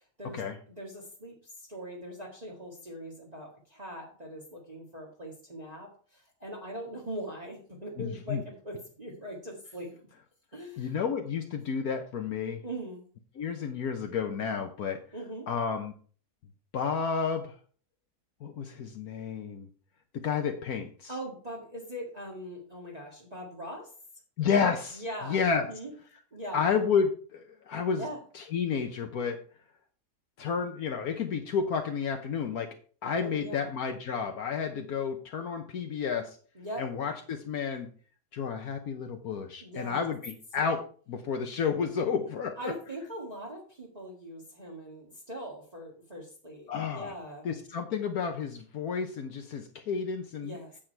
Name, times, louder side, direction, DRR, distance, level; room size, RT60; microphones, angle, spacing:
voice 1, 0.0-0.4 0.7-10.1 10.5-10.9 12.6-13.0 15.1-15.5 21.1-23.9 24.9-25.9 26.3-26.7 27.9-28.2 33.2-33.7 36.6-36.9 39.6-40.1 42.6-47.5 50.4-50.8, right 1 dB, 25° right, -3 dB, 1.9 m, -41 dB
voice 2, 8.0-8.4 10.8-12.6 13.4-15.0 15.5-15.9 16.7-17.6 18.4-19.7 20.1-21.1 24.4-25.7 26.5-28.0 28.3-29.4 30.4-32.7 33.0-36.4 36.8-37.9 38.3-42.7 46.7-47.1 47.4-50.6, left 6 dB, 70° left, 4 dB, 1.4 m, -31 dB
8.8 x 7.4 x 4.5 m, 0.43 s
omnidirectional pair, 1.6 m